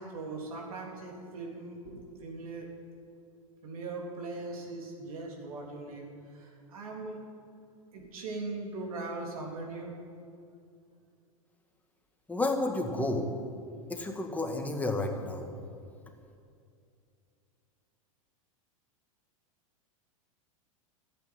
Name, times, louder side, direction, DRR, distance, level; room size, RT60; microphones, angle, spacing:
voice 1, 0.0-2.7 3.6-6.1 6.4-7.2 7.9-9.9, right 3 dB, 75° right, 0 dB, 3.5 m, -40 dB
voice 2, 12.3-13.3 13.9-15.5, left 2 dB, 10° left, 2 dB, 2.0 m, -31 dB
13.5 x 9.1 x 9.6 m, 2.4 s
hypercardioid pair, 100°, 18 cm